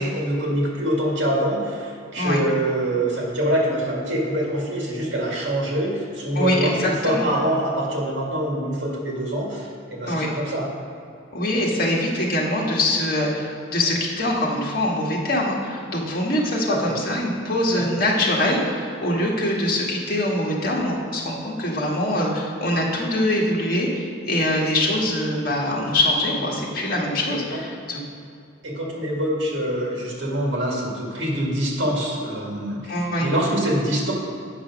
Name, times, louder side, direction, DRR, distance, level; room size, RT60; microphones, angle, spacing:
voice 1, 0.0-10.7 16.7-17.0 17.7-18.0 27.3-27.6 28.6-34.1, right 1 dB, 65° right, -3 dB, 2.2 m, -25 dB
voice 2, 6.4-7.3 10.1-10.3 11.3-28.0 32.9-33.3, left 1 dB, 50° left, -3 dB, 1.8 m, -23 dB
8.6 x 6.1 x 6.0 m, 2.5 s
head